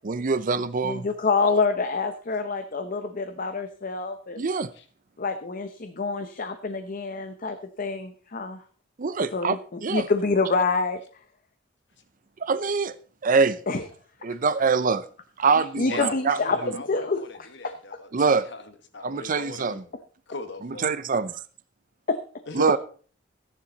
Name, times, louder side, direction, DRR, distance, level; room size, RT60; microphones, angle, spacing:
voice 1, 0.0-1.1 4.4-4.7 9.0-9.6 9.8-10.1 12.4-13.0 13.2-13.6 14.2-15.1 15.4-16.4 16.6-16.7 18.1-18.5 19.0-19.8 20.6-21.3 22.5-22.8, right 4 dB, 45° right, 0.6 m, -24 dB
voice 2, 0.8-4.4 5.2-8.6 9.3-11.0 13.7-13.8 15.6-17.2 17.6-17.7 22.1-22.2, left 4 dB, 45° left, 0.8 m, -27 dB
voice 3, 15.9-19.8 20.3-20.9 22.5-22.7, left 3 dB, 65° left, 1.4 m, -39 dB
14.0 x 10.0 x 4.0 m
head